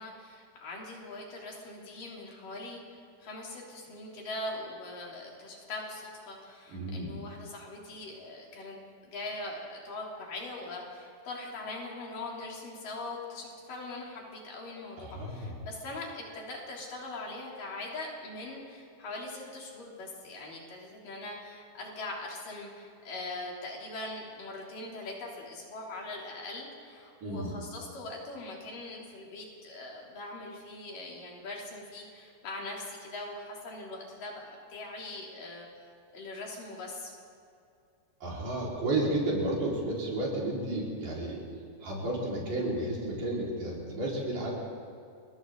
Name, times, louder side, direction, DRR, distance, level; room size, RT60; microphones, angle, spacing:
voice 1, 0.0-35.7 36.1-37.1, left 2 dB, 85° left, -2 dB, 5.1 m, -41 dB
voice 2, 6.7-7.1 15.0-15.6 27.2-27.5 38.2-41.4 41.8-44.5, right 1 dB, 75° right, -5 dB, 6.6 m, -32 dB
29.5 x 22.5 x 4.0 m, 2.5 s
omnidirectional pair, 3.7 m